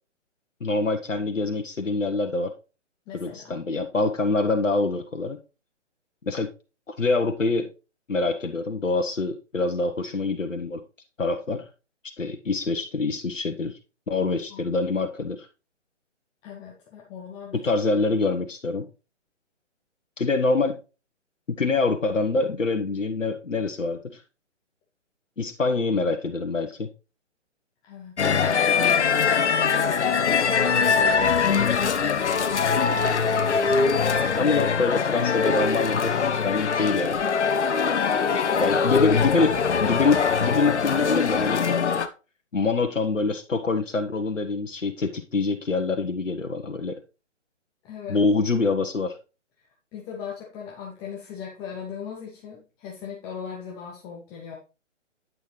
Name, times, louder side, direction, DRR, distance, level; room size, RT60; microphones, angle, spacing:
voice 1, 0.6-2.5 3.1-5.4 6.3-6.5 6.9-7.7 8.1-10.8 11.2-11.6 12.2-13.8 14.1-15.5 17.5-18.9 20.2-20.8 21.5-24.2 25.4-26.9 34.3-37.2 38.6-41.8 42.5-47.0 48.1-49.2, left 3 dB, 90° left, 5 dB, 1.2 m, -25 dB
voice 2, 3.1-3.6 14.5-14.7 16.4-17.6 17.9-18.2 27.8-33.1 37.9-39.5 47.8-48.2 49.9-54.6, left 6 dB, 10° left, -2 dB, 0.7 m, -39 dB
sound 1, 28.2-42.1, left 6 dB, 65° left, 1.1 m, -22 dB
9.4 x 6.4 x 3.2 m, 0.32 s
figure-of-eight pair, 140°, 37 cm